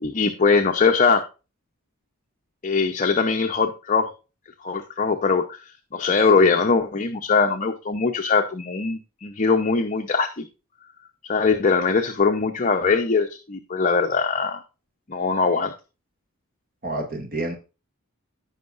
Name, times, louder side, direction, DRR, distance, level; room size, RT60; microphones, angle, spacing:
voice 1, 0.0-1.2 2.6-4.1 4.6-5.4 5.9-10.5 11.2-14.6 15.1-15.7, left 4 dB, 35° left, 4 dB, 0.8 m, -21 dB
voice 2, 16.8-17.5, right 2 dB, 45° right, 3 dB, 2.2 m, -29 dB
15.0 x 5.7 x 2.5 m, 0.30 s
head